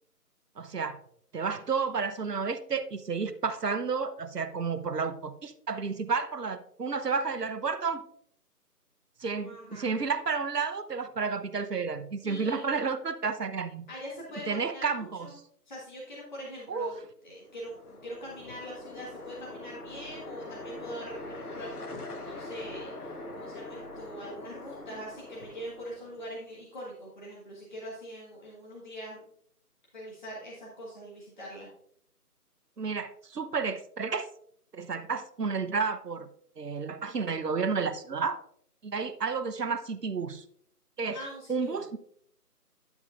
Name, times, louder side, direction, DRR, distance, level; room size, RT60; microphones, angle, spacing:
voice 1, 0.6-1.0 1.3-8.0 9.2-13.9 14.5-15.4 16.7-17.0 32.8-34.3 34.7-36.3 36.6-38.4 38.8-40.4 41.0-41.2 41.5-42.0, right 5 dB, 80° right, 12 dB, 0.9 m, -31 dB
voice 2, 9.4-9.9 12.2-12.8 13.9-15.3 15.7-29.2 29.9-31.7 41.0-41.8, equal, 30° left, -4 dB, 1.6 m, -43 dB
sound 1, 17.4-26.5, left 2 dB, 70° left, 1.4 m, -43 dB
10.5 x 7.2 x 2.5 m, 0.65 s
figure-of-eight pair, 160°, 47 cm